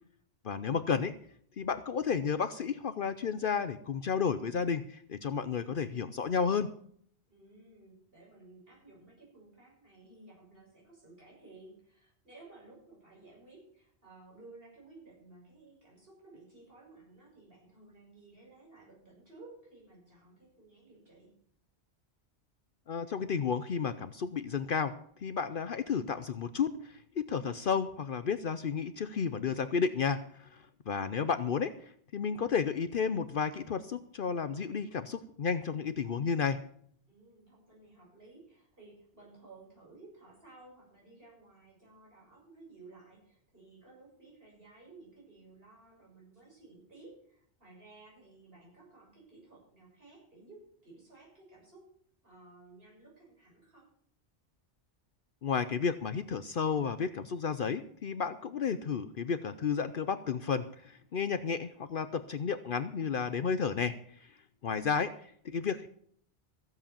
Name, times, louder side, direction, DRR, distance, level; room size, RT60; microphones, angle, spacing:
voice 1, 0.4-1.1 1.6-6.7 22.9-36.6 55.4-64.3 64.6-65.9, left 6 dB, 55° left, 12 dB, 0.8 m, -32 dB
voice 2, 7.3-21.3 37.1-51.9 52.2-53.9, right 3 dB, 55° right, -3 dB, 7.0 m, -56 dB
15.5 x 7.9 x 7.1 m, 0.62 s
omnidirectional pair, 1.1 m